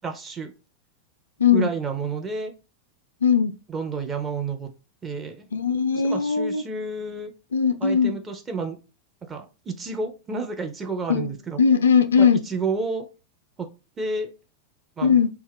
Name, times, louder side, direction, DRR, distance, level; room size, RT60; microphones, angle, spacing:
voice 1, 0.0-0.5 1.5-2.5 3.7-4.7 5.0-5.5 6.0-7.3 7.8-8.8 9.3-11.6 12.2-13.0 13.6-13.7 14.0-14.3 15.0-15.2, right 4 dB, 20° right, 0.6 m, -30 dB
voice 2, 1.4-1.7 3.2-3.5 5.5-6.6 7.5-8.2 11.1-11.3 11.6-12.4 15.0-15.3, left 6 dB, 70° left, 0.3 m, -19 dB
2.3 x 2.2 x 3.3 m
figure-of-eight pair, 90°, 0 cm